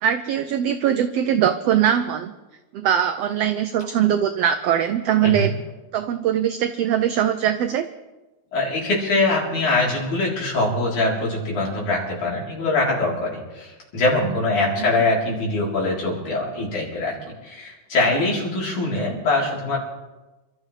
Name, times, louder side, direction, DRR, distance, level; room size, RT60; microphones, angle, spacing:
voice 1, 0.0-2.3 2.7-5.5 5.9-7.9, right 9 dB, 90° right, 9 dB, 1.4 m, -21 dB
voice 2, 8.5-17.2 17.4-19.8, left 2 dB, 75° left, -3 dB, 5.2 m, -23 dB
27.5 x 13.0 x 3.3 m, 1.1 s
omnidirectional pair, 3.6 m